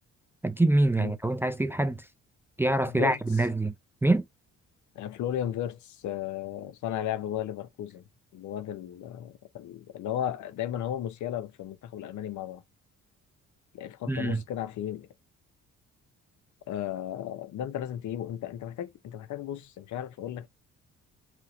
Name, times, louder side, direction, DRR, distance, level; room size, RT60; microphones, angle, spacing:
voice 1, 0.4-2.1 2.6-3.7 4.0-4.3 14.1-14.4, right 2 dB, 10° right, 0.4 m, -25 dB
voice 2, 2.8-3.2 4.9-8.0 8.3-12.6 13.7-15.1 16.7-20.5, left 11 dB, 75° left, 0.7 m, -35 dB
3.5 x 2.9 x 3.8 m
cardioid pair, 90°, 30 cm